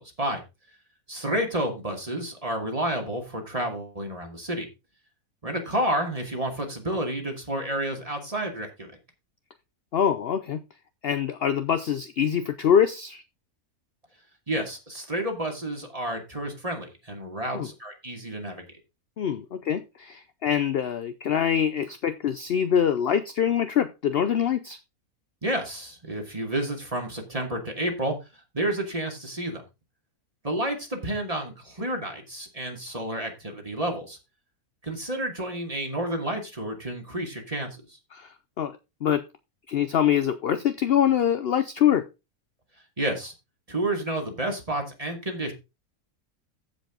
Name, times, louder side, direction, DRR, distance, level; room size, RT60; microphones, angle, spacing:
voice 1, 1.1-4.7 5.4-8.9 14.5-18.6 25.4-28.2 28.5-29.6 30.4-34.2 34.8-37.7 43.0-43.3 43.7-45.5, right 1 dB, 25° right, 2.4 m, -30 dB
voice 2, 9.9-10.6 11.0-13.2 17.5-17.7 19.2-24.8 38.1-39.3 39.7-42.1, left 9 dB, 55° left, 0.7 m, -24 dB
14.5 x 5.3 x 3.8 m
omnidirectional pair, 1.6 m